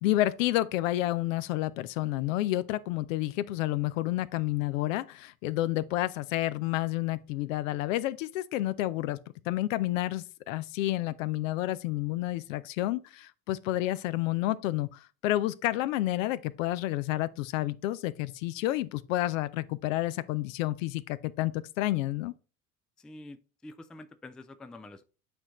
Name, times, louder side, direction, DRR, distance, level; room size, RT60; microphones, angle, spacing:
voice 1, 0.0-9.2 9.5-22.3, left 16 dB, 65° left, 0.7 m, -30 dB
voice 2, 23.0-25.0, left 2 dB, ahead, 0.4 m, -47 dB
8.7 x 4.3 x 3.0 m
hypercardioid pair, 70°, 43 cm